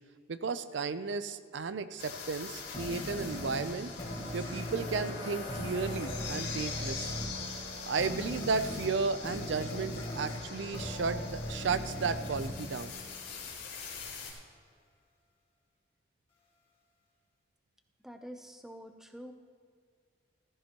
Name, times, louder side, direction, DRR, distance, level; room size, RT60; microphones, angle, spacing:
voice 1, 0.3-3.9 4.3-7.1 7.8-13.0, right 4 dB, 65° right, 12 dB, 0.5 m, -34 dB
sound 1, 2.0-14.3, left 4 dB, 70° left, 3.3 m, -43 dB
sound 2, 2.7-13.5, equal, 25° left, 1.8 m, -40 dB
voice 2, 18.0-19.3, equal, ahead, 5 dB, 0.5 m, -46 dB
15.0 x 14.5 x 2.9 m, 2.1 s
head